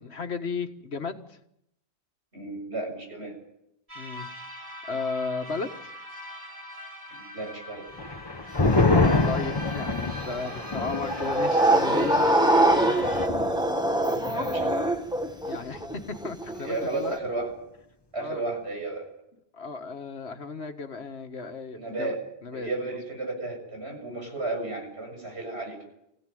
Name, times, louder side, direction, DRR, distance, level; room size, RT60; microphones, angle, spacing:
voice 1, 0.0-1.4 4.0-4.3 4.9-5.9 8.6-13.2 15.4-15.8 16.1-17.1 18.2-18.4 19.5-22.1 22.4-23.0 24.2-24.3, left 4 dB, 85° left, 7 dB, 1.9 m, -35 dB
voice 2, 2.3-3.4 7.1-7.9 14.3-15.0 16.6-17.5 18.1-19.0 21.8-22.2 22.5-25.8, right 2 dB, 85° right, 1 dB, 7.7 m, -33 dB
sound 1, 3.9-13.3, left 1 dB, 35° right, 2.7 m, -41 dB
sound 2, 8.0-14.9 15.2-15.3 15.7-16.2, left 3 dB, 25° left, 1.2 m, -27 dB
sound 3, 10.3-17.2, right 1 dB, 5° right, 1.6 m, -24 dB
24.5 x 16.5 x 9.3 m, 0.79 s
omnidirectional pair, 1.1 m